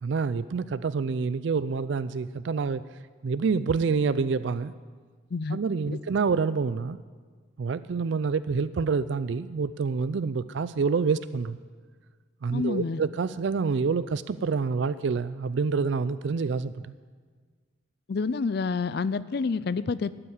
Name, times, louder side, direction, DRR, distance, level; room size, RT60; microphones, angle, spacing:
voice 1, 0.0-2.8 3.2-4.7 5.5-7.0 7.6-11.6 12.4-16.9, right 5 dB, 70° right, 15 dB, 0.4 m, -27 dB
voice 2, 12.5-13.0 18.1-20.1, left 4 dB, 55° left, 16 dB, 0.4 m, -28 dB
12.5 x 8.8 x 9.5 m, 1.5 s
head